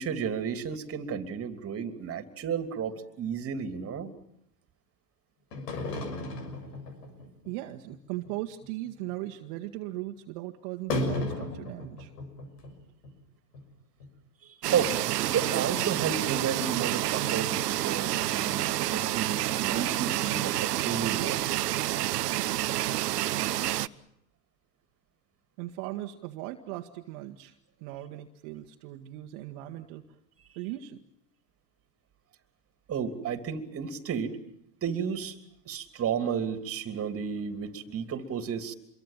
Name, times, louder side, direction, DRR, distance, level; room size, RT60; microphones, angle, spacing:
voice 1, 0.0-4.1 14.4-21.4 32.9-34.4 34.8-35.3 35.6-38.7, right 7 dB, 30° right, 10 dB, 3.1 m, -32 dB
sound 1, 5.5-7.5 7.9-8.0 8.2-8.3 8.6-8.9 9.3-9.4 10.9-12.7 13.0-13.1 13.5-13.6 14.0-14.1, left 2 dB, 80° left, 6.7 m, -34 dB
voice 2, 7.5-12.1 25.6-27.6 27.8-30.0 30.6-31.0, right 15 dB, 50° right, 4 dB, 1.8 m, -38 dB
sound 2, 14.6-23.9, right 15 dB, 75° right, 1.0 m, -29 dB
26.5 x 23.0 x 7.4 m, 0.74 s
hypercardioid pair, 110°, 48 cm